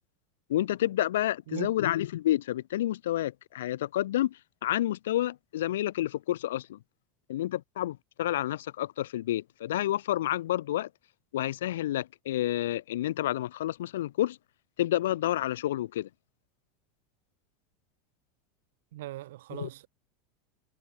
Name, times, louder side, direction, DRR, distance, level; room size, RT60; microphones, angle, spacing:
voice 1, 0.5-6.8 7.3-10.9 11.3-14.4 14.8-16.1 19.5-19.7, left 13 dB, 90° left, 0.6 m, -29 dB
voice 2, 18.9-19.9, right 16 dB, 80° right, 4.9 m, -39 dB
supercardioid pair, 125°, 0 cm